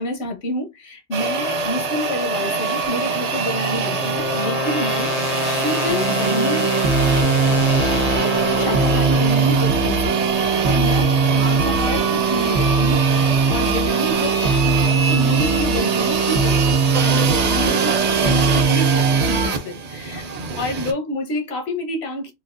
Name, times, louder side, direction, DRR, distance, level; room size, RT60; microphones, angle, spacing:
voice 1, 0.0-6.7 7.4-7.9 8.2-22.3, left 1 dB, 80° left, 1.1 m, -28 dB
sound 1, 1.1-20.9, right 5 dB, 50° right, 0.5 m, -24 dB
sound 2, 2.8-10.0, left 3 dB, 50° left, 0.5 m, -27 dB
sound 3, 5.9-19.5, right 4 dB, 75° right, 1.0 m, -20 dB
3.8 x 2.3 x 2.4 m
omnidirectional pair, 1.1 m